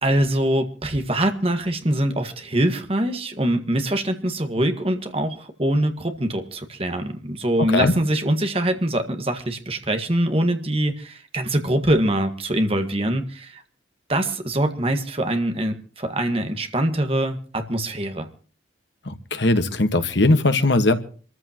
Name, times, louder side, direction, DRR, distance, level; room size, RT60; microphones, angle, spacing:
voice 1, 0.0-13.6 14.1-18.3, right 1 dB, 30° right, 6 dB, 1.7 m, -23 dB
voice 2, 19.1-21.0, left 2 dB, 65° left, 8 dB, 1.6 m, -19 dB
26.5 x 14.5 x 3.0 m, 0.39 s
head